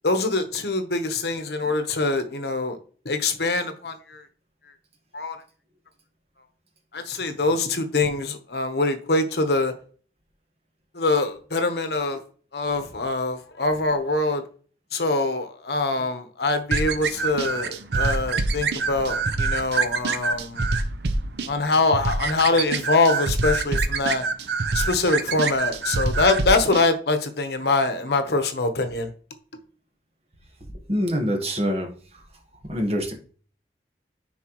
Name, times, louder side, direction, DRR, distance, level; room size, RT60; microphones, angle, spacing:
voice 1, 0.0-2.8 3.0-4.2 5.1-5.4 6.9-9.7 10.9-12.2 12.5-14.4 14.9-20.6 21.5-24.2 24.7-29.1, left 3 dB, 65° left, 1.0 m, -24 dB
sound 1, 16.7-26.8, right 4 dB, 70° right, 0.6 m, -26 dB
voice 2, 30.9-31.9 32.7-33.1, equal, 35° right, 1.3 m, -24 dB
10.0 x 4.3 x 3.1 m
head